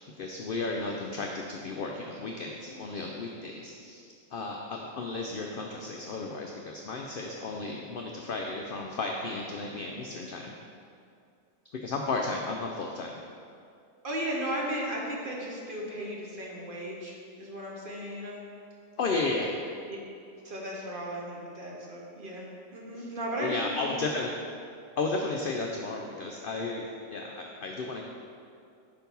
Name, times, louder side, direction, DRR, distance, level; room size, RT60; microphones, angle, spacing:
voice 1, 0.1-4.0 4.3-10.5 11.7-13.2 19.0-19.5 23.0-23.1 23.4-24.3 25.0-28.0, left 3 dB, 75° left, 1 dB, 0.5 m, -33 dB
voice 2, 14.0-18.4 20.4-22.5 22.7-24.0, right 1 dB, 45° right, -3 dB, 1.0 m, -35 dB
5.3 x 4.5 x 5.3 m, 2.4 s
omnidirectional pair, 1.5 m